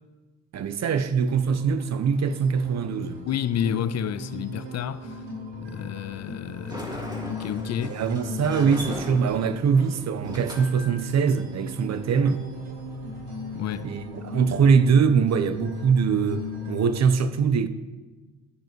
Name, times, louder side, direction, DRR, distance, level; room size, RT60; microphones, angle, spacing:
voice 1, 0.5-3.2 7.8-12.4 13.8-17.7, right 6 dB, 45° right, 0.7 m, -23 dB
sound 1, 1.0-17.0, left 2 dB, 85° right, 2.0 m, -37 dB
voice 2, 3.3-5.2 5.6-8.0 13.5-13.9, left 10 dB, 45° left, 0.4 m, -30 dB
Sliding door, 6.5-14.0, equal, 10° right, 2.5 m, -40 dB
14.0 x 6.7 x 3.1 m
supercardioid pair, 60°, 36 cm